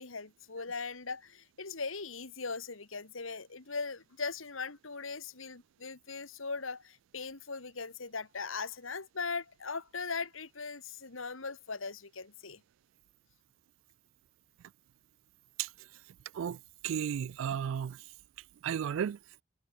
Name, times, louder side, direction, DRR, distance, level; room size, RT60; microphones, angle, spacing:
voice 1, 0.0-12.6, left 4 dB, 90° left, 2.1 m, -39 dB
voice 2, 16.8-18.0 18.6-19.2, right 8 dB, 80° right, 0.3 m, -33 dB
head